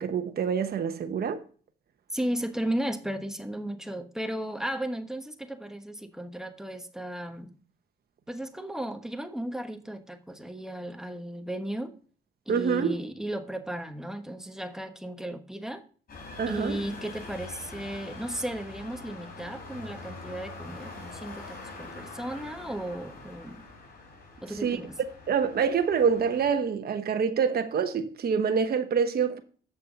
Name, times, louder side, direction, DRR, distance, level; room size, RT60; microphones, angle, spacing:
voice 1, 0.0-1.4 12.5-13.0 16.4-16.8 24.6-24.8 25.3-29.4, right 6 dB, 50° right, 1.0 m, -26 dB
voice 2, 2.1-7.5 8.3-11.9 12.5-15.8 16.4-23.6 24.4-24.9, right 1 dB, 5° right, 1.2 m, -35 dB
sound 1, 16.1-26.5, left 3 dB, 50° left, 4.3 m, -44 dB
8.2 x 6.6 x 5.1 m
cardioid pair, 90°, 20 cm